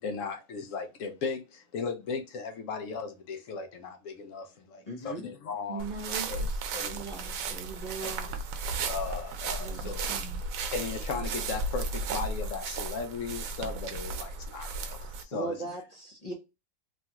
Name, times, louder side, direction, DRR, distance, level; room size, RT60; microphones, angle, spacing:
voice 1, 0.0-5.8 6.3-7.0 8.0-8.1 8.9-10.1 10.7-15.8, left 5 dB, 75° left, 0.9 m, -37 dB
voice 2, 4.9-5.2 15.3-16.3, right 2 dB, 40° left, 0.6 m, -37 dB
voice 3, 5.7-6.6 6.9-8.3 9.6-10.4, right 5 dB, 40° right, 0.9 m, -41 dB
sound 1, 5.8-15.2, right 3 dB, 85° right, 1.0 m, -34 dB
3.1 x 2.3 x 2.8 m
omnidirectional pair, 1.4 m